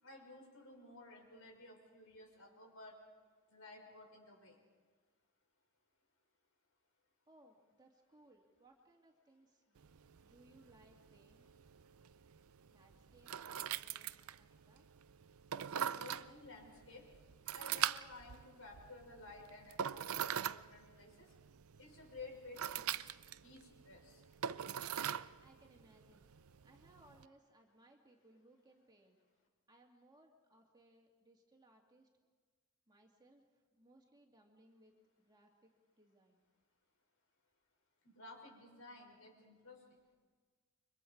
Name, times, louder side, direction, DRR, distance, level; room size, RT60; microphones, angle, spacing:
voice 1, 0.0-2.9 3.5-4.6 16.0-17.1 17.5-21.3 21.8-23.1 23.4-24.2 38.0-39.8, left 2 dB, 70° left, 0 dB, 6.1 m, -55 dB
voice 2, 7.3-9.8 10.2-11.5 12.7-14.8 25.4-26.3 26.6-29.2 29.7-32.1 32.9-35.7 36.0-36.5, right 1 dB, 20° right, 1 dB, 2.3 m, -66 dB
sound 1, 9.8-27.3, right 9 dB, 80° right, 0.6 m, -43 dB
29.5 x 24.0 x 4.7 m, 1.5 s
head